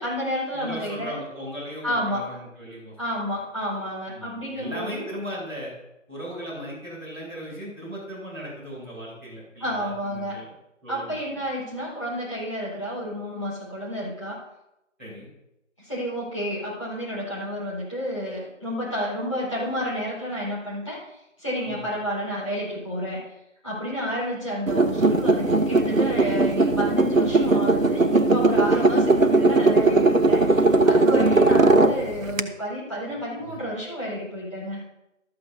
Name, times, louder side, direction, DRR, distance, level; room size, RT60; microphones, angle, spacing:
voice 1, 0.0-1.1 1.8-2.3 3.0-5.1 9.6-10.4 10.9-14.4 15.8-23.3 23.6-34.8, equal, 25° left, -9 dB, 4.6 m, -30 dB
voice 2, 0.5-3.3 4.1-5.7 6.1-10.5 10.8-11.2 15.0-15.3 21.6-21.8 31.1-31.6 33.1-33.6, equal, 10° left, -17 dB, 5.3 m, -37 dB
sound 1, 24.7-32.4, right 2 dB, 80° right, 1.0 m, -19 dB
14.0 x 13.0 x 2.8 m, 0.90 s
figure-of-eight pair, 175°, 39 cm